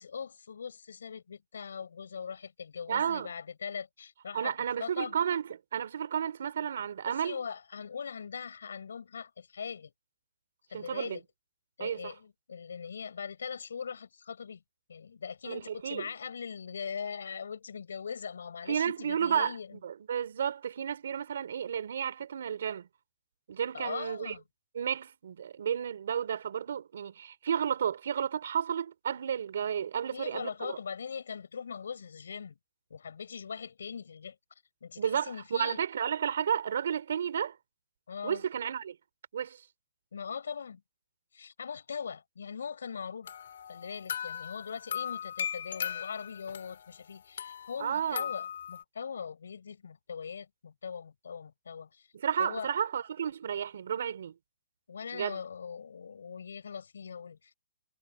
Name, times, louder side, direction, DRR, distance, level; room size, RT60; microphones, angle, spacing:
voice 1, 0.0-5.1 7.1-9.9 10.7-11.2 11.8-14.6 14.9-19.8 23.7-24.4 30.1-32.6 32.9-34.4 34.8-35.8 38.1-38.4 40.1-40.8 41.3-43.3 43.7-52.1 52.4-52.7 54.9-57.5, left 6 dB, 80° left, 5.8 m, -41 dB
voice 2, 2.9-3.3 4.3-5.4 5.7-7.4 10.7-11.2 11.8-12.1 15.4-16.1 18.7-19.5 19.8-22.9 23.5-24.4 24.7-30.8 35.0-37.5 38.2-39.0 39.3-39.6 47.8-48.3 52.2-54.3 55.1-55.4, right 8 dB, 60° right, 3.3 m, -32 dB
sound 1, 43.3-46.9 47.4-48.8, left 8 dB, 55° left, 4.8 m, -38 dB
hypercardioid pair, 170°, 0 cm